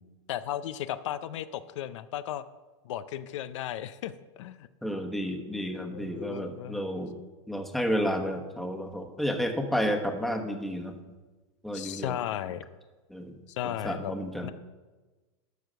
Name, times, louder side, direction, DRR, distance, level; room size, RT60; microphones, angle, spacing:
voice 1, 0.3-2.4 2.8-4.7 5.9-6.8 11.7-12.6 13.5-14.1 14.4-14.5, left 11 dB, 80° left, 13 dB, 0.5 m, -35 dB
voice 2, 4.8-7.1 7.5-11.0 11.6-12.2 13.1-13.4 13.6-14.5, equal, ahead, 3 dB, 1.1 m, -31 dB
13.0 x 4.6 x 6.7 m, 1.2 s
supercardioid pair, 130°, 15 cm